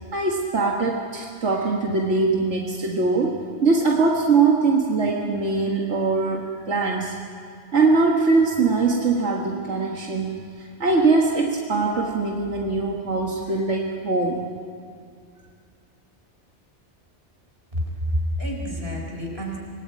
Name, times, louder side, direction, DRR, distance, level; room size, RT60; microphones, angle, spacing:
voice 1, 0.1-7.2 7.7-14.5, right 3 dB, 85° right, -1 dB, 2.0 m, -22 dB
voice 2, 17.7-19.6, equal, 55° right, -1 dB, 5.1 m, -28 dB
26.5 x 19.5 x 8.5 m, 2.2 s
omnidirectional pair, 1.2 m